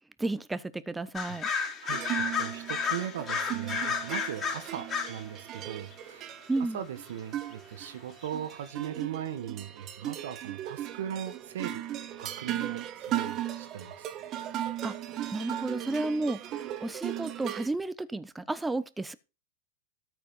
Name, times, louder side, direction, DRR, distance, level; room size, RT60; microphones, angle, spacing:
voice 1, 0.2-1.5 6.5-6.8 14.8-14.9 15.3-16.4 16.8-19.1, right 2 dB, 10° right, 0.9 m, -32 dB
sound 1, 1.1-5.2 5.6-5.9 7.5-7.6 7.8-7.9 8.2-8.3, left 6 dB, 25° left, 4.0 m, -32 dB
voice 2, 1.3-6.4 6.7-11.9 12.2-14.1, right 10 dB, 80° right, 1.8 m, -39 dB
sound 2, 1.9-17.7, right 12 dB, 35° right, 1.3 m, -37 dB
13.5 x 5.1 x 5.5 m
hypercardioid pair, 120°, 0 cm